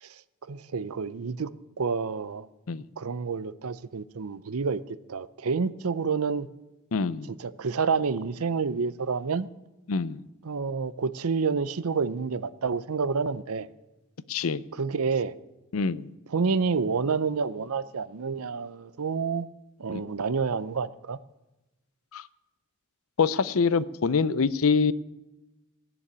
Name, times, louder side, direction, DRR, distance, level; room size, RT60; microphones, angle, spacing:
voice 1, 0.5-1.5 1.8-2.5 2.8-4.8 5.1-6.5 7.3-9.5 10.4-13.7 14.7-15.3 16.3-19.5 19.8-21.2, right 5 dB, 85° right, 16 dB, 0.6 m, -29 dB
voice 2, 6.9-7.3 9.9-10.2 14.3-14.6 15.7-16.1 19.9-20.0 22.1-22.2 23.2-24.9, left 5 dB, 75° left, 17 dB, 0.6 m, -25 dB
16.5 x 7.1 x 9.6 m, 1.0 s
head